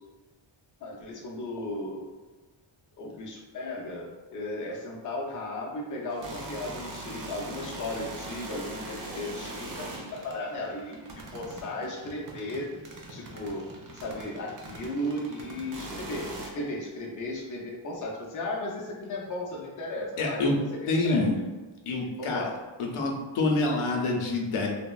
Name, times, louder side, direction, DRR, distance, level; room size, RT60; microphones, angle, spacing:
voice 1, 0.8-2.0 3.0-12.7 13.1-13.7 13.9-21.3 22.0-22.6, left 1 dB, 40° left, -2 dB, 0.5 m, -35 dB
sound 1, 6.1-16.5, right 2 dB, 45° right, 0.5 m, -41 dB
voice 2, 20.2-20.6 20.9-21.3 21.9-22.5 22.8-24.7, left 2 dB, 85° left, 0 dB, 0.6 m, -26 dB
3.4 x 2.0 x 2.3 m, 1.2 s
wide cardioid pair, 155°, 49 cm